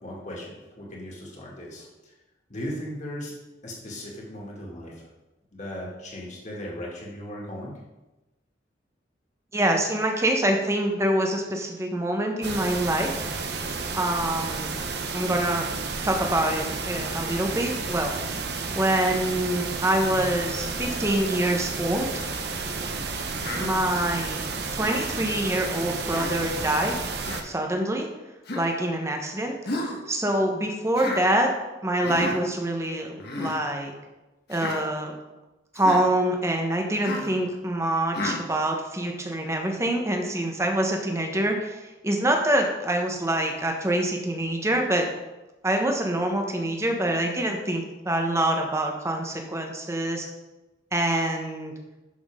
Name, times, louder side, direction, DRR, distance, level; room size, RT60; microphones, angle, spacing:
voice 1, 0.0-2.1 2.5-3.3 3.6-5.1 5.5-7.7, equal, 40° left, -3 dB, 2.4 m, -37 dB
voice 2, 9.5-13.1 13.9-14.7 15.1-15.7 16.0-18.1 18.7-22.2 23.5-24.4 24.7-27.0 27.4-28.1 28.5-31.5 31.8-33.9 34.5-35.1 35.7-45.1 45.6-50.3 50.9-51.7, right 1 dB, 15° right, 2 dB, 1.2 m, -25 dB
sound 1, 12.4-27.4, right 4 dB, 60° right, 0.9 m, -31 dB
Human voice, 23.4-23.7 24.8-25.1 26.1-26.4 27.2-27.4 28.4-28.7 29.6-30.0 30.9-31.2 32.0-32.4 33.2-33.5 34.5-34.8 35.7-36.0 37.0-37.3 38.1-38.4, left 1 dB, 55° left, 1.5 m, -32 dB
11.5 x 6.2 x 3.7 m, 1.1 s
head